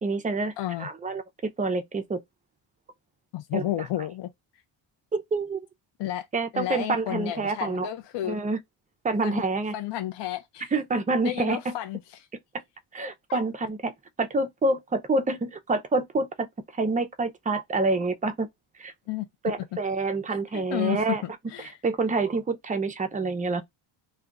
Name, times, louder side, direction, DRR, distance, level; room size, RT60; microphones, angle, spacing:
voice 1, 0.0-0.5 0.8-1.2 1.6-2.2 3.5-3.6 5.1-5.6 6.3-7.9 8.2-8.6 9.0-9.7 10.7-11.7 12.9-13.9 14.2-16.5 16.7-18.5 18.8-18.9 19.4-21.2 21.8-23.6, right 3 dB, 15° right, 0.4 m, -27 dB
voice 2, 0.6-0.9 3.3-4.3 6.0-6.3 6.5-8.4 9.2-9.4 9.7-10.7 11.2-12.2 13.3-13.4 19.1-19.3 20.5-21.8, left 13 dB, 60° left, 0.5 m, -31 dB
2.3 x 2.3 x 3.8 m
cardioid pair, 85°, 50 cm